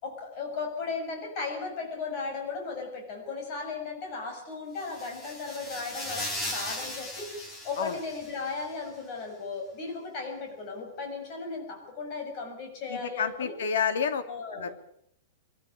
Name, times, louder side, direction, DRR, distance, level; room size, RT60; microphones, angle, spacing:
voice 1, 0.0-13.6 14.3-14.8, left 4 dB, 30° left, 2 dB, 6.8 m, -36 dB
sound 1, 4.8-8.7, left 1 dB, 10° left, 2.8 m, -38 dB
voice 2, 12.9-14.2 14.6-14.7, left 7 dB, 75° left, 9 dB, 2.8 m, -29 dB
23.0 x 14.0 x 9.8 m, 0.72 s
supercardioid pair, 180°, 0 cm